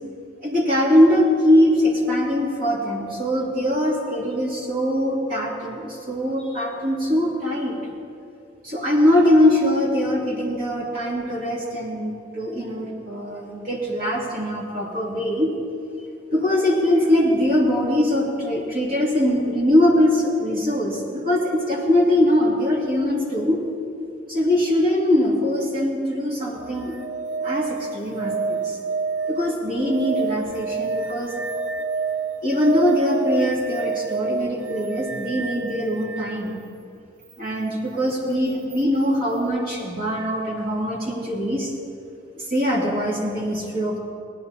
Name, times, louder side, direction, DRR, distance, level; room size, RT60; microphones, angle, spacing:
voice 1, 0.4-7.9 8.6-15.5 16.3-23.6 24.3-26.9 27.4-28.8 29.3-31.4 32.4-36.5 37.4-41.7 42.4-44.0, left 1 dB, 50° right, -3 dB, 2.6 m, -22 dB
sound 1, 26.6-36.4 38.7-38.8, right 4 dB, 85° right, 0.6 m, -28 dB
17.5 x 10.5 x 4.1 m, 2.5 s
head